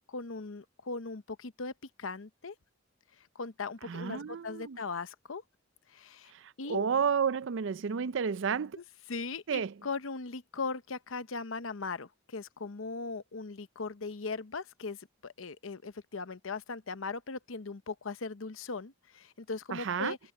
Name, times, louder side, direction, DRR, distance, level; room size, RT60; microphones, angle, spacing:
voice 1, 0.1-1.7 2.0-2.5 3.2-5.4 5.9-6.3 6.6-6.8 8.7-8.8 9.1-20.2, left 4 dB, 75° left, 0.9 m, -39 dB
voice 2, 3.8-4.8 6.3-8.8 9.5-9.7 19.7-20.1, right 6 dB, 65° right, 0.4 m, -31 dB
head